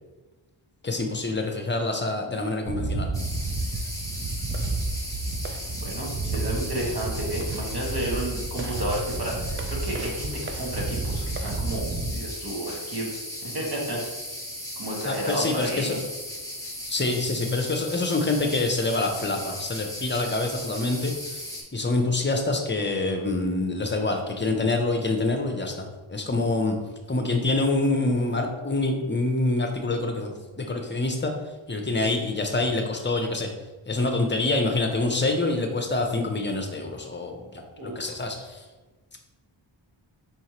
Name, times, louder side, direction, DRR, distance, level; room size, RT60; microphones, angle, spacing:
voice 1, 0.8-3.1 15.0-16.0 16.9-21.1 21.7-26.8 27.1-31.3 31.7-33.5 33.9-38.6, left 2 dB, 25° left, 4 dB, 0.6 m, -26 dB
sound 1, 2.7-12.1, right 3 dB, 30° right, 0.4 m, -31 dB
sound 2, 3.1-21.6, equal, 5° left, 1.1 m, -37 dB
voice 2, 5.8-13.1 13.5-14.0 14.8-16.0 37.8-37.9, right 1 dB, 50° right, -4 dB, 1.4 m, -31 dB
4.5 x 3.2 x 2.9 m, 1.2 s
wide cardioid pair, 45°, 49 cm